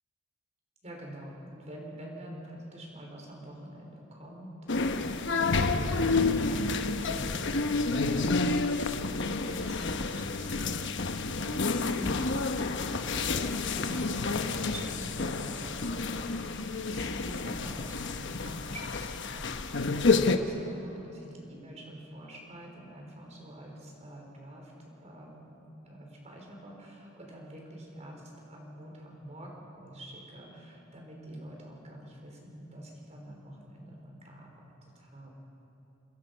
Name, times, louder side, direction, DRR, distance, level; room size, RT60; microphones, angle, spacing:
voice 1, 0.8-10.8 11.3-25.5 25.8-28.2 28.5-34.5 34.8-35.3, right 1 dB, 35° right, -1 dB, 5.0 m, -46 dB
sound 1, 4.7-20.4, left 3 dB, 60° left, 1.0 m, -29 dB
27.5 x 22.0 x 5.7 m, 3.0 s
head